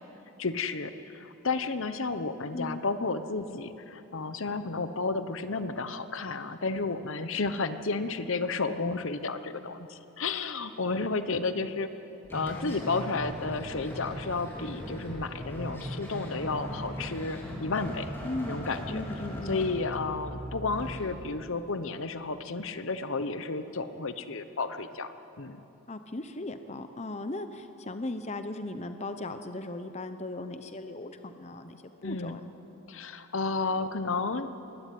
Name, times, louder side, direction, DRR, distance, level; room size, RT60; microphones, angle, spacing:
voice 1, 0.4-11.9 12.3-18.1 18.5-19.0 19.5-25.6 32.0-32.4 32.9-34.5, left 3 dB, 60° left, 11 dB, 0.9 m, -32 dB
sound 1, 12.2-21.0, equal, 10° left, 4.0 m, -39 dB
voice 2, 18.2-18.6 18.9-19.6 25.9-32.4, left 2 dB, 30° left, 9 dB, 0.8 m, -37 dB
22.5 x 16.0 x 9.3 m, 3.0 s
head